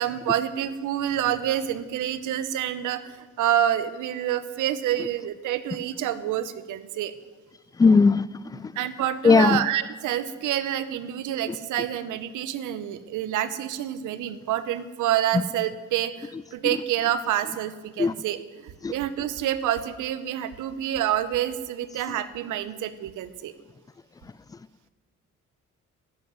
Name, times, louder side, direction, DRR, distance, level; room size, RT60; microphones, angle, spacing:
voice 1, 0.0-7.1 8.8-23.5, right 11 dB, 85° right, 13 dB, 0.9 m, -28 dB
voice 2, 7.8-8.2 9.2-9.6 18.0-18.1 18.8-18.9, left 4 dB, 15° left, 20 dB, 0.3 m, -16 dB
13.5 x 7.6 x 9.4 m, 1.3 s
cardioid pair, 90°, 30 cm